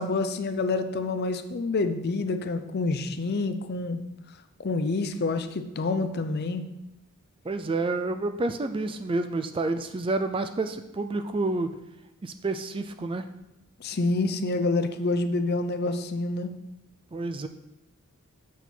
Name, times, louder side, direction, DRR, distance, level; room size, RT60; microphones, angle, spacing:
voice 1, 0.0-4.0 4.6-6.7 13.8-16.5, left 3 dB, 45° left, 9 dB, 0.5 m, -27 dB
voice 2, 7.4-11.7 12.2-13.3 17.1-17.5, right 2 dB, 25° right, 8 dB, 0.3 m, -29 dB
7.0 x 6.1 x 4.5 m, 0.91 s
head